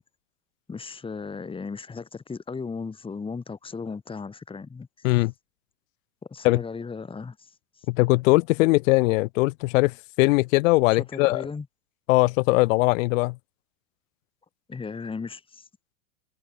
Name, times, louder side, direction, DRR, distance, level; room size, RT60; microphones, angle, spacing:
voice 1, 0.7-4.9 6.3-7.8 10.9-11.7 14.7-15.7, left 5 dB, 10° left, 3.3 m, -36 dB
voice 2, 7.9-11.5 12.1-13.4, left 23 dB, 60° left, 3.2 m, -21 dB
supercardioid pair, 135°, 45 cm